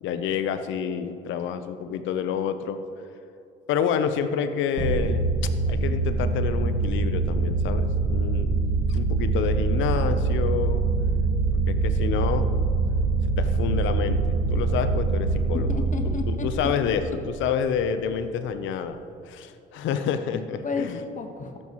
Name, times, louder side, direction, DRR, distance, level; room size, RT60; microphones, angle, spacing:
voice 1, 0.0-2.8 3.7-5.3 5.7-10.8 11.5-12.5 13.4-15.7 16.0-19.0 19.3-21.0, left 7 dB, 70° left, 10 dB, 0.9 m, -28 dB
sound 1, 4.8-17.6, right 3 dB, 40° right, 1.4 m, -24 dB
voice 2, 15.7-16.5 20.3-21.6, left 4 dB, 40° left, 5 dB, 1.4 m, -33 dB
13.0 x 11.0 x 3.1 m, 2.7 s
supercardioid pair, 80°, 20 cm